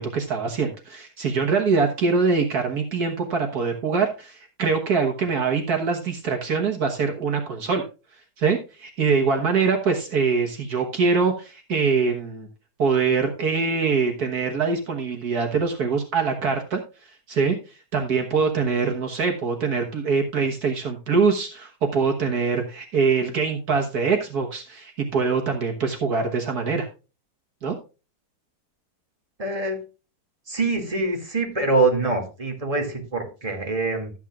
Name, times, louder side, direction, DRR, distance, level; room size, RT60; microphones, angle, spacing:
voice 1, 0.0-7.9 8.4-12.5 12.8-16.8 17.3-17.6 17.9-26.9 27.6-27.8, right 5 dB, 65° right, 3 dB, 1.8 m, -23 dB
voice 2, 29.4-29.8 30.5-34.1, right 3 dB, 20° right, 3 dB, 2.4 m, -24 dB
13.0 x 9.1 x 2.4 m, 0.31 s
omnidirectional pair, 1.8 m